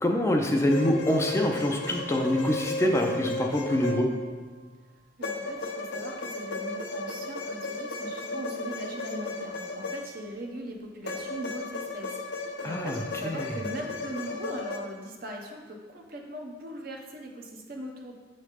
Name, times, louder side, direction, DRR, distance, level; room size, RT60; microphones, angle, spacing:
voice 1, 0.0-4.1 12.6-13.0 13.2-13.5, left 1 dB, 15° left, 1 dB, 0.5 m, -25 dB
sound 1, 0.7-4.5 5.2-10.4 11.0-14.8, left 2 dB, 80° left, 0.6 m, -35 dB
voice 2, 5.2-18.1, right 1 dB, 55° right, 2 dB, 0.8 m, -40 dB
7.7 x 3.2 x 5.0 m, 1.4 s
head